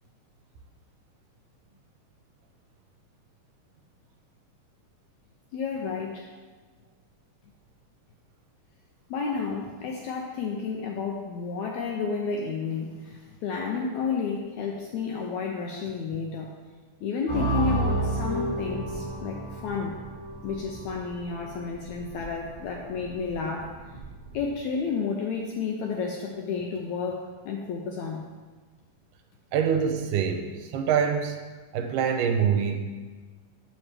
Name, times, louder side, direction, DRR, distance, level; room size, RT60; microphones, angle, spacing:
voice 1, 5.5-6.3 9.1-16.5 17.0-20.0 20.4-23.7 24.3-28.3, left 5 dB, 80° left, 0 dB, 1.7 m, -31 dB
sound 1, 17.3-24.5, right 2 dB, 55° left, 2.9 m, -32 dB
voice 2, 29.5-31.4 31.7-32.9, right 7 dB, 85° right, 4 dB, 2.2 m, -25 dB
7.1 x 7.0 x 3.3 m, 1.3 s
omnidirectional pair, 3.8 m